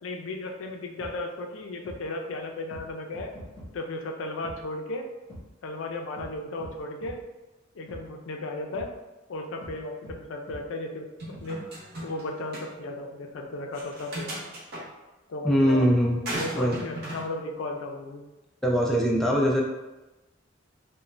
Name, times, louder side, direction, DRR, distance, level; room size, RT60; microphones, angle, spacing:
voice 1, 0.0-3.3 3.7-5.1 5.6-7.2 7.8-8.9 9.3-11.1 11.4-11.6 12.0-14.4 15.3-15.8 16.3-18.2, left 2 dB, 85° left, 3 dB, 0.4 m, -35 dB
sound 1, 1.0-1.1 1.8-2.0 2.7-2.8 3.1-3.7 4.4-4.6 5.3-5.4 6.2-6.3 6.6-6.7 7.0-7.2 7.9-8.0 8.7-8.9 9.6-9.7 10.0-10.2 10.5-10.6 11.3-11.4, equal, 30° left, 0.9 m, -42 dB
sound 2, 11.2-12.2 12.5-12.7 13.7-14.8 16.3-17.3, right 1 dB, 55° right, 0.7 m, -35 dB
voice 2, 15.4-16.2 16.5-16.8 18.6-19.6, equal, ahead, -3 dB, 0.3 m, -22 dB
2.5 x 2.1 x 3.1 m, 1.1 s
head